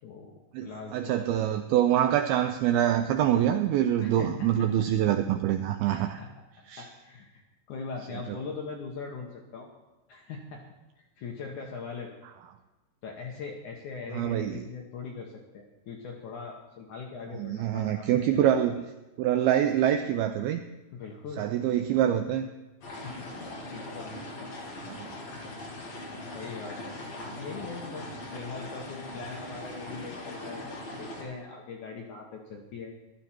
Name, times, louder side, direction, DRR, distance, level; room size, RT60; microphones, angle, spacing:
voice 1, 0.0-1.2 4.0-4.7 5.8-6.3 6.8-7.4 7.7-9.7 10.1-10.6 11.0-12.1 13.0-18.5 20.9-21.5 22.9-23.3 23.7-24.5 26.2-27.0 27.3-32.9, left 4 dB, 70° left, 0 dB, 1.9 m, -41 dB
voice 2, 0.5-6.2 6.7-6.9 14.1-14.6 17.4-18.8 19.2-20.6 21.4-22.5 24.9-25.2, right 11 dB, 90° right, 8 dB, 2.2 m, -25 dB
sound 1, 22.8-31.2, left 1 dB, 45° left, 3.1 m, -40 dB
14.5 x 12.0 x 4.4 m, 1.1 s
omnidirectional pair, 5.0 m